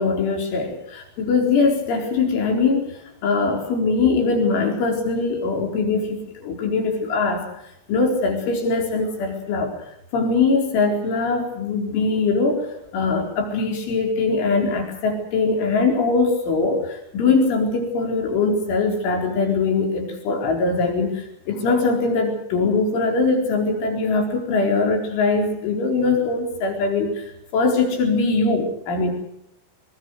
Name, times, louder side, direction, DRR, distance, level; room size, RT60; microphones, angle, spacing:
voice 1, 0.0-2.9 3.2-7.5 7.9-9.7 10.1-27.3 27.5-29.1, left 4 dB, 80° left, 3 dB, 6.7 m, -21 dB
24.5 x 23.5 x 6.4 m, 0.78 s
omnidirectional pair, 5.4 m